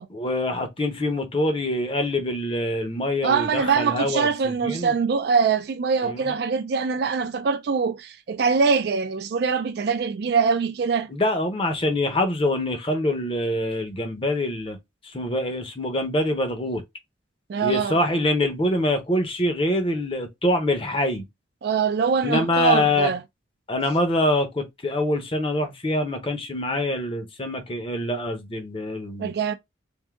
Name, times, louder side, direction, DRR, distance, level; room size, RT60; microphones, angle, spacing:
voice 1, 0.2-4.3 4.6-4.9 6.0-6.2 11.1-14.8 15.0-16.8 17.6-21.2 22.2-23.1 23.7-29.3, left 1 dB, 30° left, 0.7 m, -25 dB
voice 2, 3.2-11.1 17.5-18.0 21.6-23.2 29.2-29.5, right 5 dB, 55° right, 0.3 m, -23 dB
3.6 x 2.6 x 3.5 m
head